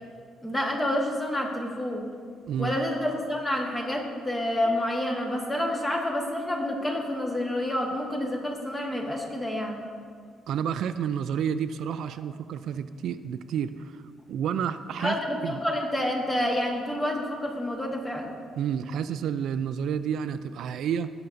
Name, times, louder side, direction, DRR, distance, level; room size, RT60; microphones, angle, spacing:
voice 1, 0.4-2.0 2.6-9.8 15.0-18.3, left 1 dB, 10° left, 0 dB, 1.3 m, -28 dB
voice 2, 10.5-14.0 14.3-15.1 15.4-15.6 18.6-21.1, right 8 dB, 70° right, 11 dB, 0.3 m, -30 dB
17.5 x 6.9 x 2.6 m, 2.1 s
cardioid pair, 140°, 0 cm